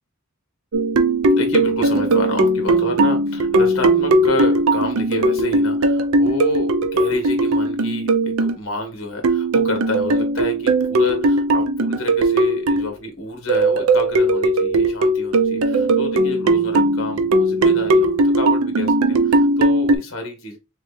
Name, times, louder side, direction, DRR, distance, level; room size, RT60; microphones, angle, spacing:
sound 1, 0.7-8.5 9.2-12.9 13.5-20.0, right 2 dB, 85° right, 0.5 m, -18 dB
voice 1, 1.4-20.6, left 2 dB, 65° left, 4 dB, 1.1 m, -29 dB
3.2 x 3.1 x 3.2 m, 0.26 s
head